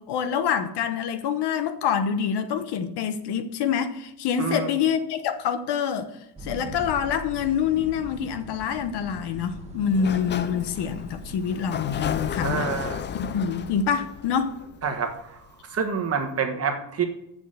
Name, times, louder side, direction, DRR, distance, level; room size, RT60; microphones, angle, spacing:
voice 1, 0.0-6.1 6.4-12.7 13.1-14.6, left 7 dB, 60° left, 1.0 m, -26 dB
voice 2, 4.4-4.7 12.4-13.0 14.8-15.4 15.7-17.0, right 6 dB, 35° right, 1.3 m, -27 dB
sound 1, 6.4-13.0, right 1 dB, 15° right, 1.5 m, -41 dB
Sliding door, 9.8-15.5, left 8 dB, 30° left, 0.3 m, -34 dB
7.1 x 6.2 x 7.8 m
cardioid pair, 150°, 45 cm